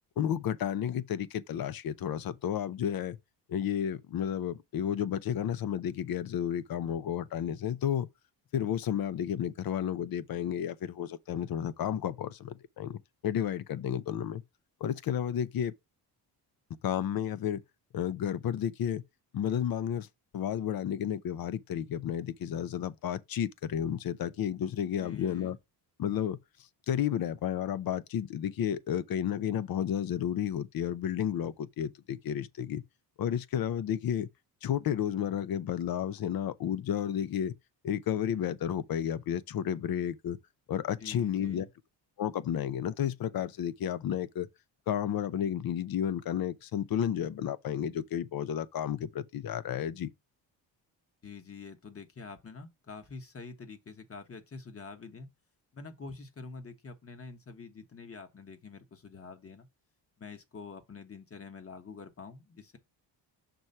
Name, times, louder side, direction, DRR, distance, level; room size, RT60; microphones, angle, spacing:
voice 1, 0.2-3.2 3.5-8.1 8.5-13.0 13.2-14.4 14.8-15.7 16.8-17.6 17.9-19.0 19.3-20.1 20.3-25.6 26.0-26.4 26.9-32.8 33.2-34.3 34.6-37.5 37.8-40.4 40.7-41.7 42.2-44.5 44.9-50.1, left 9 dB, 55° left, 0.6 m, -32 dB
voice 2, 25.0-25.5 41.0-41.7 51.2-55.3 55.7-59.7 60.2-62.8, left 4 dB, 30° left, 1.3 m, -46 dB
6.1 x 3.2 x 5.4 m
cardioid pair, 85°, 44 cm